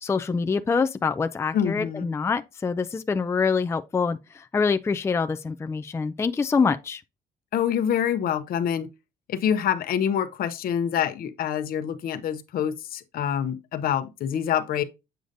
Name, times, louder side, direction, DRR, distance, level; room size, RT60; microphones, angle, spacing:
voice 1, 0.0-7.0, left 5 dB, 15° left, 0.4 m, -25 dB
voice 2, 1.5-2.1 7.5-8.9 9.3-14.8, left 9 dB, 60° left, 0.8 m, -26 dB
7.9 x 5.0 x 2.5 m
cardioid pair, 110°, 17 cm